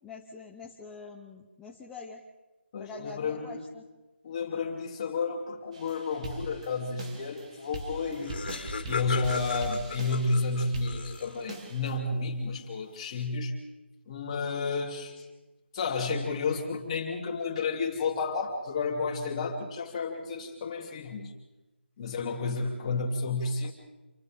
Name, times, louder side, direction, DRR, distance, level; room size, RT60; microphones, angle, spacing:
voice 1, 0.0-2.2 2.8-3.8 22.8-23.0, left 4 dB, 5° left, -2 dB, 0.9 m, -45 dB
voice 2, 2.7-3.6 4.2-8.4 8.8-13.6 14.1-15.2 15.7-21.3 22.0-23.7, left 4 dB, 25° left, 0 dB, 3.5 m, -31 dB
sound 1, 5.7-12.0, right 2 dB, 35° right, 2.5 m, -41 dB
Laughter, 7.7-7.8 7.9-11.6, left 5 dB, 55° left, 3.2 m, -37 dB
29.0 x 28.0 x 3.9 m, 1.1 s
figure-of-eight pair, 165°, 6 cm